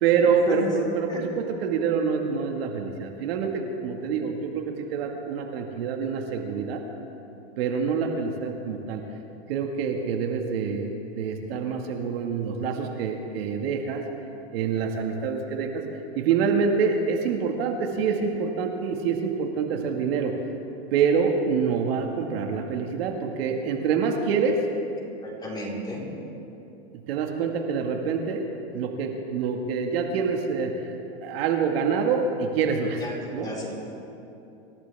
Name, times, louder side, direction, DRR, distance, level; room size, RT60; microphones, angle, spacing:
voice 1, 0.0-6.8 7.6-9.0 9.5-14.0 14.5-15.8 16.2-20.3 20.9-24.6 27.1-28.4 28.7-30.8 31.2-33.0 33.3-33.5, right 6 dB, 65° right, 3 dB, 2.0 m, -26 dB
voice 2, 25.2-26.0 33.0-33.7, left 1 dB, 15° left, -4 dB, 4.1 m, -34 dB
27.0 x 14.5 x 3.5 m, 2.8 s
supercardioid pair, 135°, 33 cm